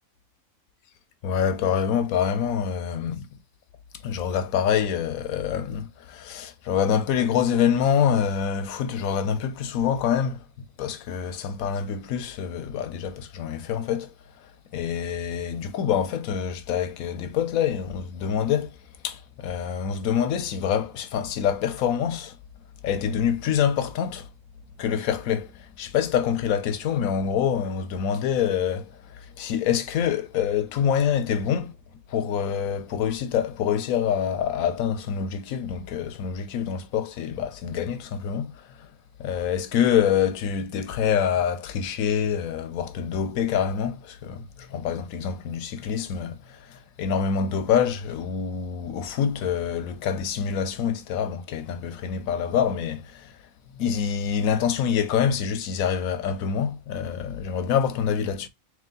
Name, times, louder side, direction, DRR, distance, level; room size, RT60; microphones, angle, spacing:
voice 1, 1.2-3.3 4.0-14.1 14.7-18.8 19.0-22.4 22.8-24.3 24.8-31.7 32.1-38.9 39.2-53.4 53.7-58.5, left 8 dB, 85° left, 1.1 m, -26 dB
3.3 x 3.1 x 3.7 m
omnidirectional pair, 1.4 m